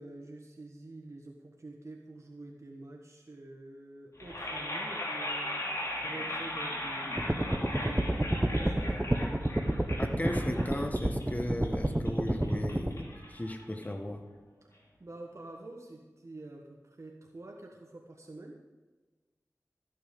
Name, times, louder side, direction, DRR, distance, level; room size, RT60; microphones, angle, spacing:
voice 1, 0.0-5.7 6.0-8.3 8.5-8.9 15.0-18.5, right 2 dB, 55° right, 0 dB, 1.4 m, -47 dB
sound 1, 4.1-14.2, left 1 dB, 60° left, 3.1 m, -38 dB
sound 2, 7.2-12.9, right 1 dB, 15° right, 0.9 m, -29 dB
voice 2, 10.0-14.3, left 1 dB, 25° left, 5 dB, 1.3 m, -36 dB
13.5 x 9.1 x 5.3 m, 1.3 s
wide cardioid pair, 55°, 6 cm